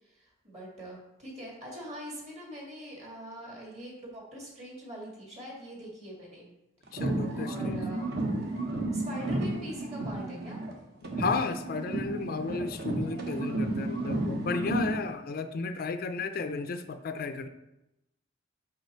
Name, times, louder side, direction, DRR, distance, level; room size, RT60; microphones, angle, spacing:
voice 1, 0.0-6.5 6.8-7.1 7.3-8.1 8.9-10.6, equal, 35° right, -3 dB, 2.1 m, -43 dB
voice 2, 6.9-7.8 11.2-17.5, left 4 dB, 50° left, 9 dB, 0.4 m, -33 dB
sound 1, 6.9-10.8 11.0-15.0, right 2 dB, 55° right, 1.0 m, -32 dB
5.5 x 5.1 x 4.5 m, 0.92 s
head